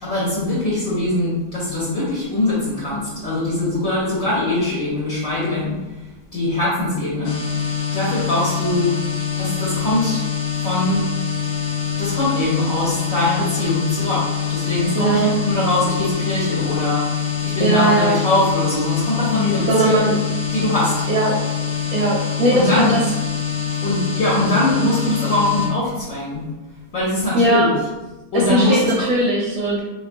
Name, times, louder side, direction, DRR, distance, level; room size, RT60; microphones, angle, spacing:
voice 1, 0.0-6.0 6.3-7.4 7.9-9.0 9.4-10.2 10.6-11.0 12.0-20.2 20.5-20.9 22.5-22.9 23.8-26.5 26.9-27.7 28.3-28.9, left 1 dB, 60° left, -8 dB, 1.1 m, -22 dB
sound 1, 7.2-25.7, left 7 dB, 90° left, 0.5 m, -25 dB
voice 2, 14.9-15.3 17.6-18.2 19.7-20.1 21.1-21.4 21.9-23.0 27.3-27.7 28.3-29.8, right 1 dB, 70° right, -2 dB, 0.9 m, -18 dB
3.5 x 2.9 x 2.5 m, 1.1 s
omnidirectional pair, 1.8 m